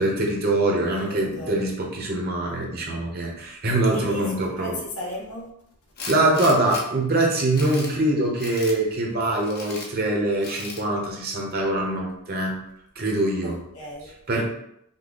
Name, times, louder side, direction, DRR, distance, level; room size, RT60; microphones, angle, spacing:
voice 1, 0.0-4.8 6.1-12.6 13.0-13.5 14.3-14.5, right 2 dB, 45° right, -1 dB, 1.0 m, -23 dB
voice 2, 1.1-1.6 3.9-5.5 13.4-14.1, left 1 dB, 85° left, -2 dB, 1.4 m, -36 dB
Tools, 6.0-6.8 7.3-7.9 8.4-8.8 9.4-9.9 10.4-10.8, left 2 dB, 45° left, 0.8 m, -36 dB
5.3 x 2.3 x 4.0 m, 0.77 s
head